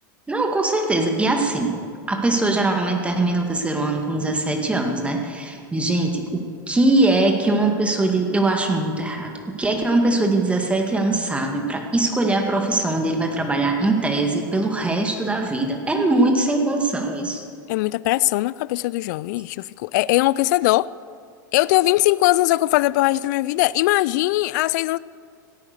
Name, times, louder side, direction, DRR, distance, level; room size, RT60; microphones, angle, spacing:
voice 1, 0.3-1.8 2.1-17.4, right 2 dB, 10° right, 1.9 m, -21 dB
voice 2, 17.7-20.9 21.5-25.0, left 18 dB, 60° left, 0.3 m, -20 dB
16.5 x 8.9 x 6.7 m
hypercardioid pair, 95°, 11 cm